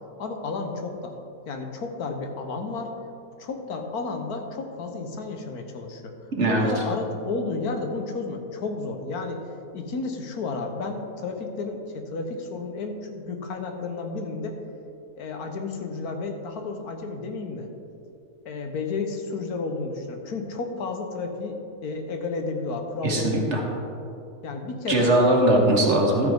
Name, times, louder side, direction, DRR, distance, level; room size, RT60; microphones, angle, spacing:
voice 1, 0.2-1.1 1.5-2.9 3.4-6.1 6.5-9.4 9.7-14.5 15.2-17.7 18.4-21.6 21.8-23.8 24.4-25.1, left 3 dB, 90° left, 4 dB, 1.5 m, -32 dB
voice 2, 6.4-6.8 23.0-23.6 24.9-26.3, right 1 dB, 50° right, 0 dB, 1.8 m, -20 dB
13.0 x 9.0 x 3.5 m, 2.7 s
omnidirectional pair, 1.6 m